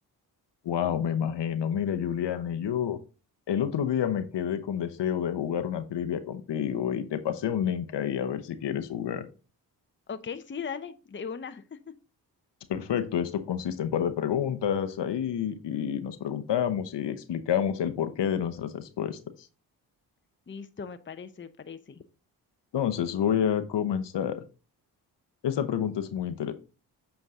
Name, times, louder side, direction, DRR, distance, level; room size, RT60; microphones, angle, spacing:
voice 1, 0.6-3.0 3.5-9.2 12.7-19.2 22.7-24.4 25.4-26.5, left 9 dB, 65° left, 9 dB, 1.0 m, -29 dB
voice 2, 10.1-11.8 20.5-22.0, left 6 dB, 25° left, 10 dB, 0.8 m, -38 dB
8.0 x 4.6 x 3.7 m, 0.33 s
supercardioid pair, 45°, 45 cm